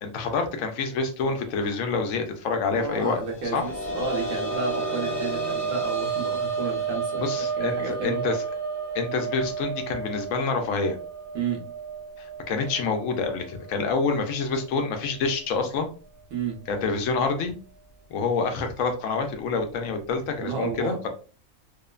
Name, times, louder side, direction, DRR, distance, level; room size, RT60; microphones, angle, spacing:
voice 1, 0.0-3.2 3.5-3.7 7.2-8.4 8.9-11.0 12.2-15.9 16.7-17.5 18.1-21.1, left 4 dB, 75° left, 5 dB, 1.0 m, -27 dB
voice 2, 2.7-7.2 7.6-8.2 11.3-11.6 16.3-16.6 20.4-21.0, right 4 dB, 70° right, 1 dB, 1.2 m, -31 dB
sound 1, 3.2-14.7 15.0-15.1 16.6-16.7, right 4 dB, 60° left, 0.3 m, -31 dB
3.0 x 2.0 x 2.3 m, 0.36 s
omnidirectional pair, 1.4 m